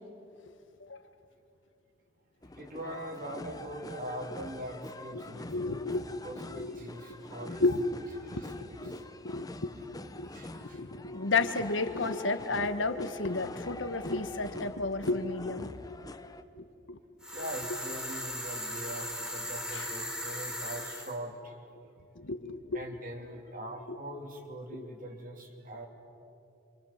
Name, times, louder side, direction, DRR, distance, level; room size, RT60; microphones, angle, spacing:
sound 1, 2.4-16.4, left 2 dB, 20° left, 0.8 m, -45 dB
voice 1, 2.6-5.8 6.2-7.6 8.2-9.0 10.3-10.8 17.3-21.6 22.7-25.9, right 1 dB, 45° right, 2 dB, 3.2 m, -42 dB
voice 2, 5.1-6.2 6.5-7.1 7.5-8.0 8.3-9.0 9.2-10.3 10.7-16.0 16.6-17.0 19.7-19.9 22.2-22.8 24.7-24.9, left 3 dB, 85° left, 9 dB, 1.4 m, -33 dB
sound 2, 17.2-21.2, equal, 5° right, 3.3 m, -38 dB
27.5 x 26.0 x 7.3 m, 2.7 s
head